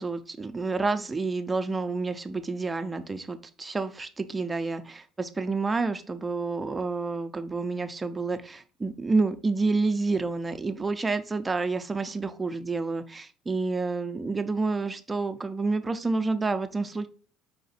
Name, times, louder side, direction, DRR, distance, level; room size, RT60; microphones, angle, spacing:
voice 1, 0.0-17.1, right 3 dB, 15° right, 9 dB, 0.6 m, -29 dB
5.0 x 2.7 x 4.0 m, 0.39 s
cardioid pair, 110°, 0 cm